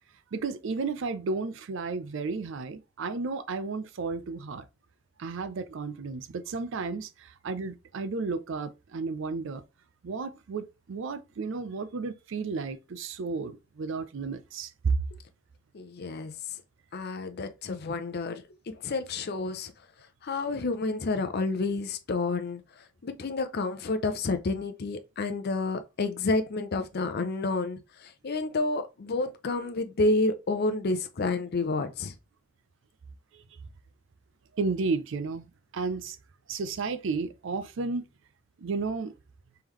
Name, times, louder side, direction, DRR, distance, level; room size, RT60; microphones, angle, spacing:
voice 1, 0.3-4.7 5.2-9.6 10.0-15.0 33.3-33.4 34.6-36.2 36.5-38.1 38.6-39.1, right 4 dB, 65° right, 0.5 m, -32 dB
voice 2, 15.7-16.3 16.9-19.7 20.2-32.1, left 3 dB, 50° left, 0.5 m, -30 dB
3.7 x 3.4 x 3.0 m
head